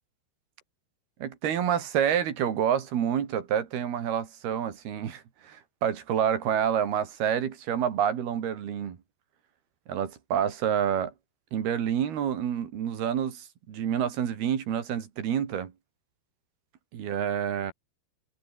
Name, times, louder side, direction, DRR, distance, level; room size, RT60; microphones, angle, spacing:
voice 1, 1.2-9.0 9.9-11.1 11.5-15.7 16.9-17.7, right 9 dB, 60° right, 4.3 m, -28 dB
omnidirectional pair, 5.2 m